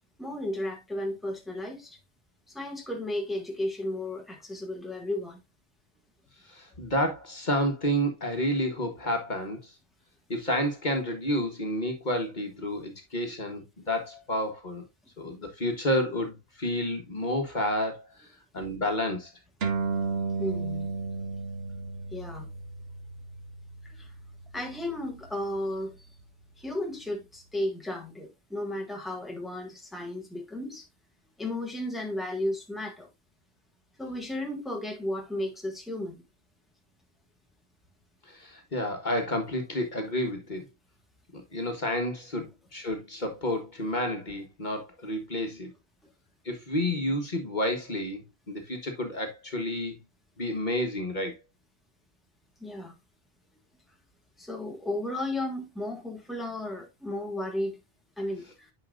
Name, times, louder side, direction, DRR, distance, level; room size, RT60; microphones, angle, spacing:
voice 1, 0.2-2.0 2.5-5.4 20.4-20.9 22.1-22.5 23.8-24.1 24.5-26.0 26.6-30.9 31.4-33.1 34.0-36.2 52.6-52.9 54.4-57.8 58.2-58.7, left 1 dB, ahead, 1.6 m, -34 dB
voice 2, 6.4-9.7 10.3-14.8 15.2-18.3 18.5-19.3 38.3-40.7 41.3-45.7 46.4-50.0 50.4-51.4, equal, 45° left, 1.6 m, -30 dB
sound 1, 19.6-26.4, right 4 dB, 70° right, 1.3 m, -35 dB
9.7 x 5.4 x 2.5 m
omnidirectional pair, 1.1 m